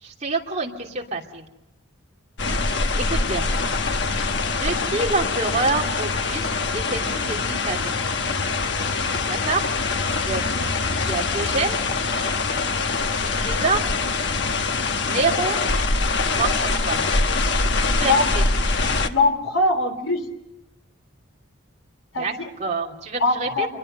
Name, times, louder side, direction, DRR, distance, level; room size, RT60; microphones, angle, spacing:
voice 1, 0.0-1.4 3.0-3.5 4.6-8.2 9.3-9.6 10.3-10.7 11.0-11.8 13.1-13.8 15.0-15.6 16.3-17.0 17.8-18.4 22.1-22.3 22.6-23.7, right 3 dB, 35° right, 0 dB, 2.9 m, -27 dB
sound 1, 2.4-19.1, left 3 dB, 60° left, 1.3 m, -24 dB
voice 2, 19.0-20.2 22.1-22.5 23.2-23.7, left 2 dB, 80° left, 6 dB, 3.9 m, -22 dB
28.0 x 22.5 x 6.7 m, 0.90 s
head